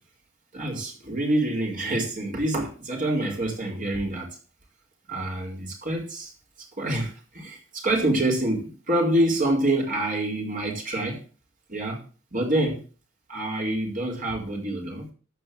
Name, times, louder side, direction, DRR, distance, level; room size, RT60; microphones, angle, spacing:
voice 1, 0.5-4.4 5.1-6.3 6.6-11.2 11.7-12.0 12.3-12.8 13.3-15.1, right 1 dB, 40° right, -1 dB, 4.3 m, -26 dB
14.5 x 5.4 x 7.6 m, 0.38 s
head